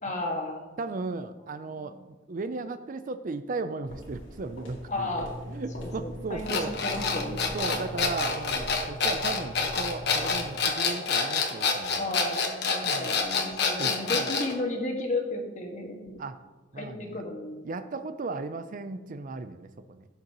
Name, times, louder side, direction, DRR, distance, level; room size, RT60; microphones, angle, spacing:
voice 1, 0.0-0.7 1.7-1.9 4.9-5.3 5.8-7.4 12.0-16.2 16.8-17.6, left 2 dB, 40° left, 1 dB, 1.7 m, -33 dB
voice 2, 0.8-5.1 5.5-6.7 7.2-12.2 12.8-13.1 13.8-14.3 16.2-16.4 16.7-17.2 17.6-20.1, right 3 dB, 45° right, 10 dB, 0.5 m, -36 dB
sound 1, 3.9-10.7, left 1 dB, 90° left, 2.5 m, -41 dB
sound 2, 6.5-14.5, left 4 dB, 60° left, 1.3 m, -27 dB
16.0 x 6.6 x 3.0 m, 1.2 s
head